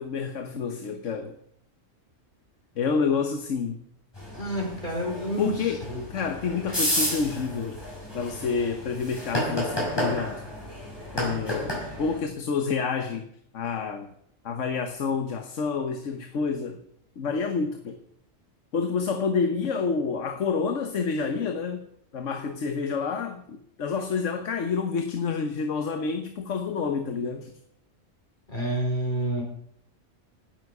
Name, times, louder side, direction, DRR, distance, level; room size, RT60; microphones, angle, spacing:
voice 1, 0.0-1.4 2.8-3.8 5.4-5.8 6.1-7.8 8.1-10.4 11.1-13.3 13.5-14.1 14.4-16.8 17.2-18.0 18.7-21.8 22.1-27.6, left 5 dB, 75° left, 7 dB, 1.4 m, -28 dB
sound 1, 4.2-12.2, equal, 20° left, 5.7 m, -32 dB
voice 2, 4.3-6.0 28.5-29.4, equal, 40° left, 0 dB, 4.9 m, -29 dB
16.5 x 12.5 x 4.8 m, 0.70 s
omnidirectional pair, 1.3 m